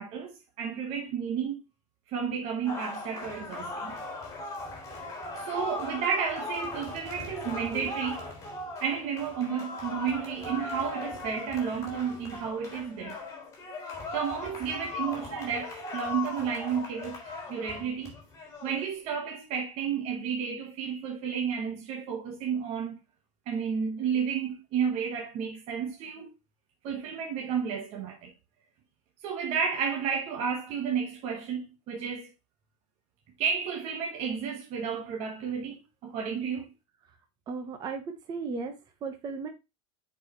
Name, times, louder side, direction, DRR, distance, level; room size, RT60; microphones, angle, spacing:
voice 1, 0.0-1.6 2.1-4.0 5.4-8.3 8.8-13.2 14.1-18.2 18.6-23.0 23.5-26.3 26.8-28.3 29.2-32.3 33.4-36.7, right 7 dB, 40° right, 1.3 m, -32 dB
sound 1, 2.7-18.9, left 2 dB, 20° left, 3.4 m, -38 dB
voice 2, 37.5-39.5, right 4 dB, 25° right, 1.0 m, -36 dB
8.0 x 4.7 x 3.1 m
supercardioid pair, 165°, 16 cm